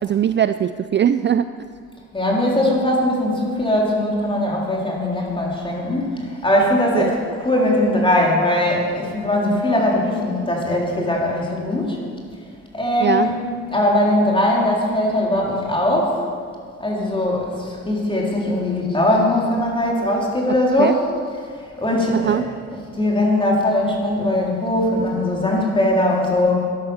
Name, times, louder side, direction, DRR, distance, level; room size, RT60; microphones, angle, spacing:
voice 1, 0.0-1.5 6.9-7.1 13.0-13.3 20.8-21.0 22.1-22.4, right 9 dB, 40° right, 12 dB, 0.4 m, -20 dB
voice 2, 2.1-12.0 12.7-16.2 16.8-21.0 21.6-26.7, left 1 dB, 15° left, -3 dB, 3.9 m, -20 dB
12.5 x 11.0 x 7.3 m, 2.1 s
cardioid pair, 90°, 30 cm